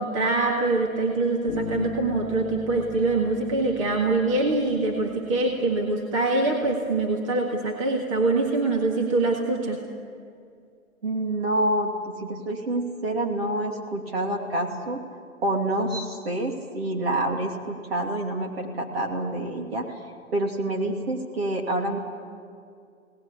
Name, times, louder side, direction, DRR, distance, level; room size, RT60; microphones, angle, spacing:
voice 1, 0.0-9.8, right 3 dB, 25° right, 1 dB, 1.8 m, -24 dB
Bass guitar, 1.5-5.2, left 6 dB, ahead, 2.8 m, -38 dB
voice 2, 11.0-15.0 15.4-20.0 20.3-22.0, right 1 dB, 45° right, 2 dB, 2.9 m, -27 dB
23.5 x 18.5 x 9.9 m, 2.3 s
hypercardioid pair, 165°, 42 cm